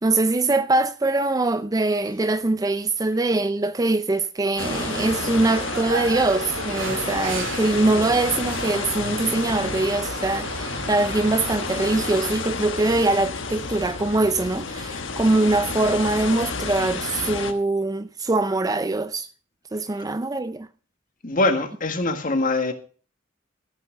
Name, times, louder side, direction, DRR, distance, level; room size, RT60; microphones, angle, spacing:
voice 1, 0.0-19.3 19.7-20.7, right 2 dB, 20° right, 0.4 m, -23 dB
sound 1, 4.5-12.4, right 3 dB, 80° right, 2.5 m, -33 dB
sound 2, 4.6-17.5, left 4 dB, 70° left, 1.2 m, -31 dB
voice 2, 21.2-22.7, left 2 dB, 45° left, 1.5 m, -23 dB
14.0 x 6.0 x 6.4 m
head